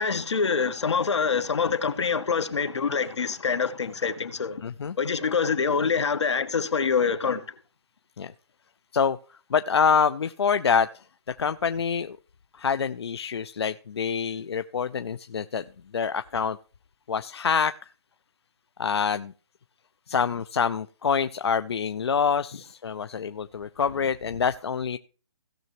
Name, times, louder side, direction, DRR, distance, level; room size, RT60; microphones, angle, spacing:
voice 1, 0.0-4.6 5.0-7.5, left 5 dB, 85° left, 1.4 m, -25 dB
voice 2, 4.6-4.9 8.2-8.3 8.9-9.2 9.5-10.9 11.3-12.2 12.5-15.6 15.9-16.6 17.1-17.7 18.8-19.3 20.1-25.0, left 6 dB, 65° left, 0.5 m, -26 dB
17.0 x 6.7 x 3.0 m
hypercardioid pair, 175°, 14 cm